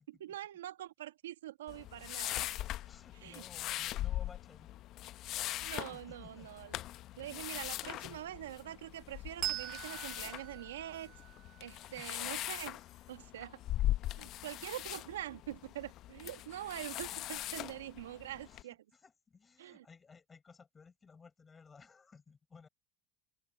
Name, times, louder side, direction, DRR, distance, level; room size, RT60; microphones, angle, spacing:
voice 1, 0.1-2.5 3.2-3.4 5.6-6.8 7.2-11.1 11.6-12.8 13.1-13.5 14.2-18.8 19.6-19.8, right 13 dB, 85° right, 1.4 m, -44 dB
sound 1, 1.7-18.6, left 14 dB, 55° left, 0.8 m, -40 dB
voice 2, 2.9-4.7 5.9-6.7 11.9-12.5 13.3-13.5 14.2-14.3 18.4-22.7, left 5 dB, 25° left, 6.5 m, -58 dB
Bell, 9.4-12.5, right 17 dB, 55° right, 0.4 m, -43 dB
open air
hypercardioid pair, 80°, 0 cm